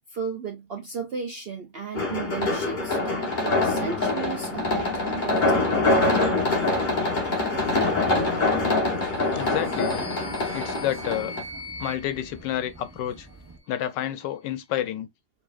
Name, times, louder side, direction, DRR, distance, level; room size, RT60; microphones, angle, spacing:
voice 1, 0.1-5.8 9.3-9.4, right 6 dB, 80° right, 0.5 m, -34 dB
sound 1, 1.9-11.4, left 2 dB, 30° left, 1.2 m, -24 dB
Vehicle, 4.5-13.6, right 3 dB, 15° right, 0.8 m, -44 dB
sound 2, 9.0-13.3, left 2 dB, 60° left, 0.4 m, -41 dB
voice 2, 9.3-10.1 10.5-11.3 11.8-13.3 13.7-15.1, left 11 dB, 90° left, 1.3 m, -29 dB
4.8 x 3.4 x 2.4 m
omnidirectional pair, 1.9 m